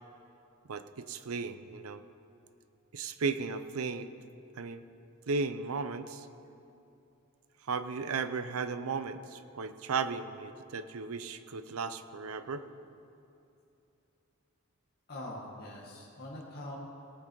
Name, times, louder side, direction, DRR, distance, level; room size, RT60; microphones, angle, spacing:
voice 1, 0.7-2.0 2.9-4.1 4.6-4.8 5.3-6.3 7.7-12.6, right 4 dB, 85° right, 12 dB, 0.6 m, -35 dB
voice 2, 15.1-16.7, left 1 dB, 50° left, -5 dB, 1.7 m, -43 dB
18.5 x 7.6 x 4.6 m, 2.8 s
head